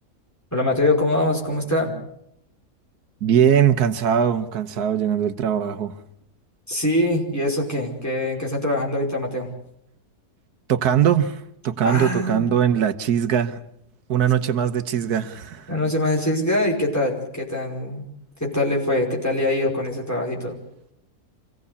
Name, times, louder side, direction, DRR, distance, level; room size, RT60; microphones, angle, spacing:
voice 1, 0.5-1.9 6.7-9.5 11.8-12.5 15.7-18.0 18.4-20.6, left 1 dB, 10° left, -1 dB, 5.2 m, -23 dB
voice 2, 3.2-5.9 10.7-13.6 14.1-15.7, right 9 dB, 85° right, 10 dB, 1.6 m, -21 dB
26.0 x 17.0 x 8.4 m, 0.77 s
omnidirectional pair, 1.6 m